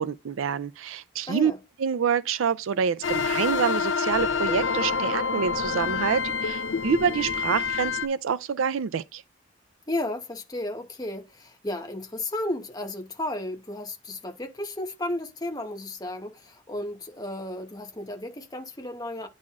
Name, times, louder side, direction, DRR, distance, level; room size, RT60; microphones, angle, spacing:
voice 1, 0.0-1.5 1.8-9.2, right 7 dB, 85° right, 0.4 m, -27 dB
sound 1, 3.0-8.1, left 5 dB, 70° left, 0.6 m, -27 dB
voice 2, 9.9-19.3, left 1 dB, 20° left, 0.9 m, -33 dB
9.7 x 4.1 x 2.4 m
head